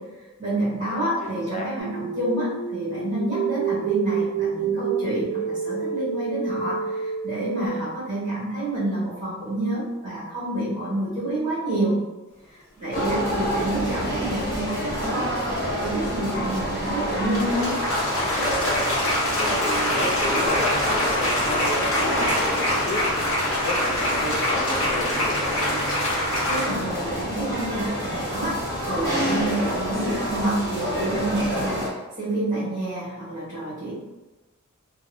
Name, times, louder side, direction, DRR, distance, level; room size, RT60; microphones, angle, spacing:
voice 1, 0.4-11.9 12.8-15.3 15.6-17.8 26.5-33.9, right 1 dB, 40° right, -12 dB, 1.3 m, -28 dB
voice 2, 1.2-1.7 13.2-13.6 19.3-25.8, left 1 dB, 35° left, -3 dB, 0.5 m, -32 dB
sound 1, 1.8-7.7, right 6 dB, 75° right, 0.6 m, -28 dB
sound 2, 12.9-31.9, equal, 15° left, 1.0 m, -28 dB
sound 3, 13.1-13.2 16.2-26.7, left 1 dB, 65° left, 0.9 m, -25 dB
2.7 x 2.1 x 2.6 m, 1.1 s
head